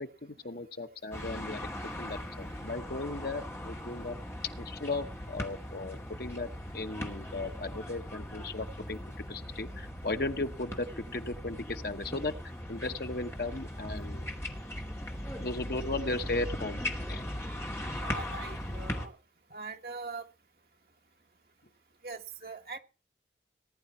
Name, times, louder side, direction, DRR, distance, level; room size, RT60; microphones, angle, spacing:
voice 1, 0.0-1.6 2.0-4.2 4.6-6.5 6.7-9.0 9.3-12.3 12.7-14.3 15.4-16.8 17.1-17.3, left 2 dB, 60° left, 1.2 m, -36 dB
sound 1, 1.1-19.1, left 1 dB, 15° left, 2.2 m, -39 dB
voice 2, 18.0-19.2 19.5-20.3 22.0-22.8, right 4 dB, 55° right, 1.7 m, -42 dB
19.0 x 10.5 x 4.4 m
head